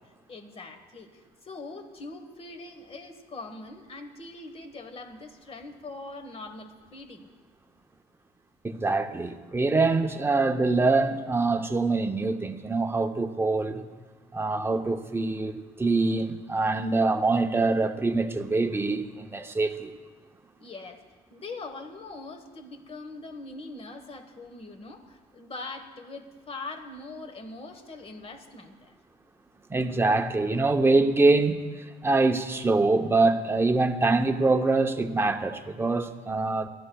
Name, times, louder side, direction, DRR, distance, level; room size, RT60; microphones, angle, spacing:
voice 1, 0.3-7.3 20.6-21.0 21.3-28.9, left 3 dB, 35° left, 7 dB, 1.3 m, -42 dB
voice 2, 8.6-13.8 14.3-19.9 29.7-36.7, right 3 dB, 15° right, 6 dB, 0.7 m, -24 dB
21.5 x 12.5 x 2.3 m, 1.4 s
cardioid pair, 110°, 17 cm